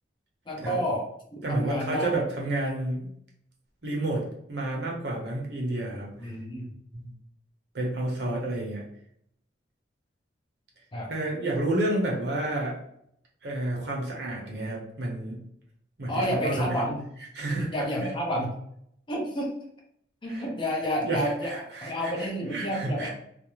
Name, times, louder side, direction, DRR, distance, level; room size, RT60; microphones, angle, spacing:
voice 1, 0.5-2.2 6.2-6.7 10.9-11.1 16.1-17.0 17.5-18.5 19.1-19.6 20.2-23.1, equal, 25° left, -1 dB, 0.5 m, -30 dB
voice 2, 1.4-3.1 3.8-6.1 6.9-7.1 7.7-8.8 11.0-12.8 13.4-15.4 16.0-16.8 17.3-17.7 18.0-18.1 20.3-20.5 21.0-23.1, right 1 dB, 65° right, -2 dB, 0.7 m, -30 dB
2.4 x 2.0 x 2.9 m, 0.71 s
head